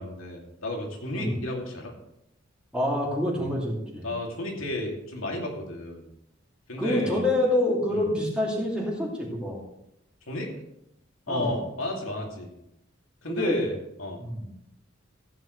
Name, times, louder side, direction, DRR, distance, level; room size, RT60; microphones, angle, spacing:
voice 1, 0.0-1.9 3.4-3.5 4.0-6.0 6.7-7.2 7.9-8.0 10.3-10.5 11.3-12.5 13.2-13.7 14.0-14.2, left 1 dB, 90° left, 0 dB, 2.6 m, -32 dB
voice 2, 2.7-4.1 6.8-9.6 11.3-11.5 13.3-13.6 14.2-14.5, left 1 dB, 5° right, -4 dB, 2.4 m, -27 dB
15.0 x 9.0 x 3.2 m, 0.81 s
head